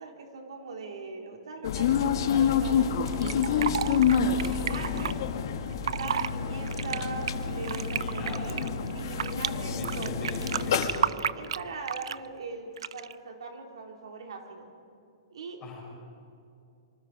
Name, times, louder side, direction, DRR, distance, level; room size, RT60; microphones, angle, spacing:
voice 1, 0.0-3.9 4.4-5.1 6.0-10.3 11.3-14.7 15.3-15.6, right 4 dB, 90° right, 2 dB, 3.8 m, -41 dB
sound 1, 1.6-10.9, left 7 dB, 50° left, 1.8 m, -28 dB
Fill (with liquid), 3.1-5.1 5.7-6.3 6.7-9.5 9.8-12.3 12.8-13.1, right 8 dB, 75° right, 0.6 m, -32 dB
voice 2, 8.0-8.6 9.6-11.1 15.6-15.8, left 2 dB, 15° left, -3 dB, 5.7 m, -40 dB
26.5 x 24.5 x 5.0 m, 2.6 s
hypercardioid pair, 175°, 3 cm